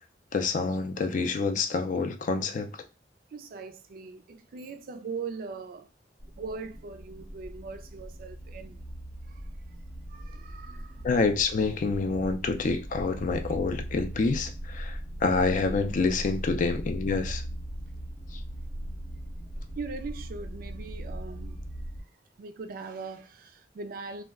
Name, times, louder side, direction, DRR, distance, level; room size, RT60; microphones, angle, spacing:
voice 1, 0.3-2.7 11.0-17.4, left 4 dB, 45° left, 0.3 m, -27 dB
voice 2, 3.3-5.9 6.4-8.8 9.3-9.4 10.1-11.1 17.2-17.3 19.8-21.6 22.4-24.2, right 4 dB, 55° right, 0.3 m, -40 dB
sound 1, 6.2-22.0, right 1 dB, 80° left, 1.1 m, -39 dB
2.2 x 2.1 x 3.5 m
head